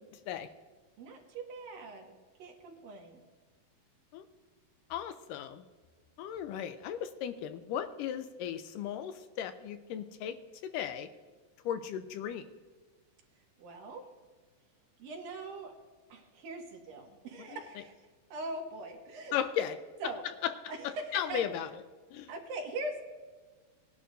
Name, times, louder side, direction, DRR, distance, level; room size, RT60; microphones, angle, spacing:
voice 1, 1.0-2.1 2.4-3.2 13.6-14.0 15.0-15.7 16.1-17.9 18.3-19.4 20.0-20.2 20.7-21.4 22.3-23.0, right 2 dB, 85° right, 1 dB, 3.3 m, -41 dB
voice 2, 4.9-5.6 6.2-10.4 10.6-11.1 11.7-12.5 17.4-17.6 19.3-19.8 20.4-20.5 20.8-21.7 22.1-22.3, left 9 dB, 80° left, 9 dB, 2.1 m, -36 dB
19.5 x 11.0 x 2.6 m, 1.4 s
omnidirectional pair, 4.0 m